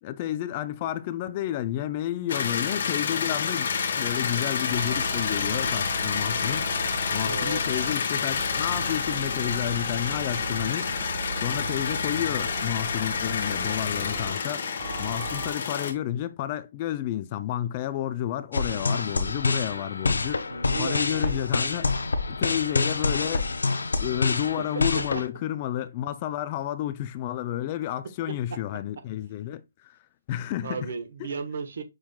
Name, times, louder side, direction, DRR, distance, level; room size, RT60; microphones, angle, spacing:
voice 1, 0.0-3.7 4.0-6.9 7.1-10.9 11.4-14.7 15.0-20.4 20.8-21.9 22.3-23.5 24.0-30.0 30.3-30.9 31.2-31.3, left 12 dB, 30° left, 0.3 m, -31 dB
sound 1, 2.3-15.9, left 6 dB, 55° left, 1.0 m, -29 dB
sound 2, 3.7-15.5, right 2 dB, 30° right, 1.7 m, -37 dB
voice 2, 7.1-7.6 20.5-21.4 24.9-25.0 30.6-31.8, right 4 dB, 60° right, 1.1 m, -34 dB
sound 3, 18.5-25.3, left 3 dB, 90° left, 0.6 m, -27 dB
6.3 x 3.8 x 2.2 m
hypercardioid pair, 155°, 0 cm